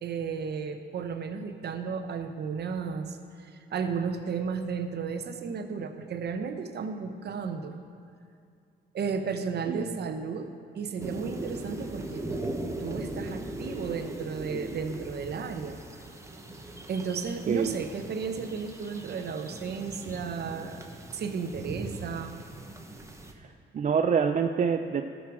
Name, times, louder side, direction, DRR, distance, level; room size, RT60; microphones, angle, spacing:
voice 1, 0.0-7.8 8.9-12.5 12.8-15.8 16.9-22.4, right 5 dB, 55° right, 7 dB, 0.9 m, -34 dB
voice 2, 9.7-10.0 17.5-17.7 23.4-23.5 23.7-25.0, right 6 dB, 40° right, 6 dB, 0.4 m, -26 dB
sound 1, 11.0-23.3, right 2 dB, 15° right, 1.0 m, -39 dB
13.5 x 6.3 x 6.2 m, 2.4 s
cardioid pair, 90°, 20 cm